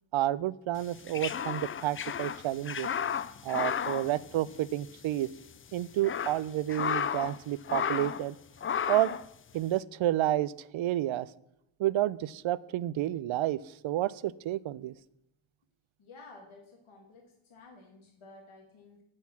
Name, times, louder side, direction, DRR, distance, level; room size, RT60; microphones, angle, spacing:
voice 1, 0.1-2.9 3.4-5.3 5.7-8.4 8.9-9.1 9.5-11.3 11.8-14.9, right 14 dB, 70° right, 19 dB, 0.5 m, -30 dB
sound 1, 0.8-4.9 5.2-5.3 5.8-7.4 7.7-8.3 8.6-9.3, left 8 dB, 30° left, 0.3 m, -33 dB
voice 2, 16.0-19.0, left 3 dB, 70° left, 0 dB, 1.8 m, -53 dB
9.7 x 4.5 x 7.1 m, 0.83 s
cardioid pair, 65°, 50 cm